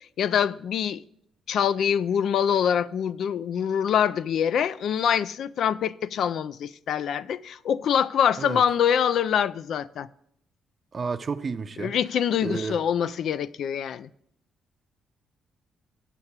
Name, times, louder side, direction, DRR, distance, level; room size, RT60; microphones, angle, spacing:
voice 1, 0.2-1.0 1.5-10.1 11.8-14.1, left 8 dB, 70° left, 0.3 m, -25 dB
voice 2, 10.9-11.9 12.4-12.8, right 5 dB, 40° right, 0.5 m, -31 dB
8.1 x 5.5 x 7.2 m
cardioid pair, 90°, 0 cm